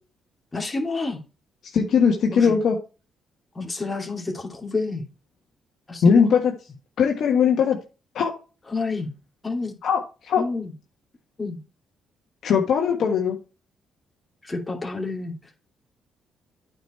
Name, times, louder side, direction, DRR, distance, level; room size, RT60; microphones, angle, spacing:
voice 1, 0.5-1.2 2.3-2.6 3.5-5.1 5.9-6.4 8.7-9.1 9.4-9.8 10.4-10.7 11.4-11.6 14.4-15.5, left 3 dB, 20° left, 1 dB, 2.7 m, -29 dB
voice 2, 1.7-2.8 6.0-6.5 7.0-7.8 8.2-8.3 9.8-10.4 12.4-13.4, left 6 dB, 65° left, 1 dB, 1.6 m, -19 dB
9.0 x 5.2 x 4.3 m, 0.32 s
cardioid pair, 90°, 0 cm